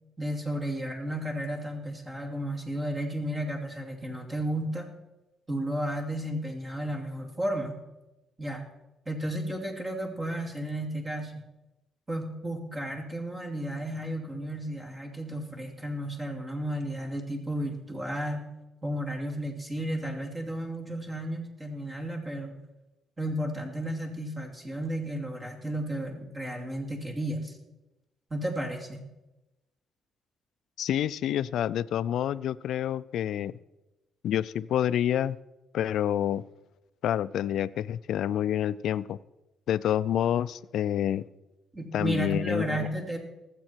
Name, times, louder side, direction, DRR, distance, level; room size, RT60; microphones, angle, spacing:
voice 1, 0.2-4.9 5.5-7.8 8.4-8.6 9.1-11.4 12.1-18.5 18.8-22.6 23.2-27.6 28.3-29.0 41.7-43.2, right 1 dB, 25° right, 1 dB, 2.6 m, -33 dB
voice 2, 30.8-33.5 34.2-35.4 35.7-36.4 37.0-39.2 39.7-41.2 41.9-42.9, left 10 dB, 75° left, 17 dB, 0.4 m, -28 dB
19.5 x 7.6 x 4.5 m, 1.0 s
cardioid pair, 90°, 0 cm